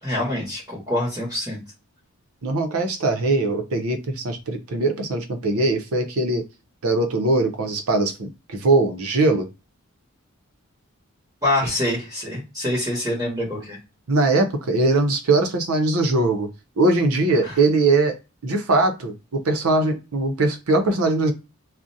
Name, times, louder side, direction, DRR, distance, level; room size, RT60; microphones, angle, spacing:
voice 1, 0.0-1.6 11.4-13.8 17.4-17.5, left 1 dB, 15° right, -5 dB, 1.0 m, -25 dB
voice 2, 2.4-6.4 6.8-9.5 14.1-16.5 16.8-18.2 18.4-21.3, right 2 dB, 75° right, 6 dB, 0.6 m, -21 dB
2.4 x 2.0 x 2.6 m, 0.29 s
head